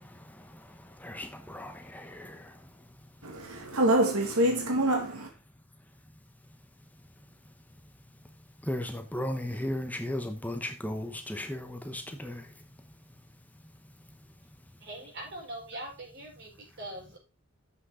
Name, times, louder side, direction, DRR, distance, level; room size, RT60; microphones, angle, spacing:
voice 1, 1.0-2.3 8.7-12.4, left 1 dB, 5° left, 0.8 m, -35 dB
voice 2, 3.2-5.3, right 1 dB, 85° right, 2.0 m, -26 dB
voice 3, 14.8-17.2, right 1 dB, 55° right, 4.7 m, -42 dB
7.8 x 6.2 x 4.9 m
head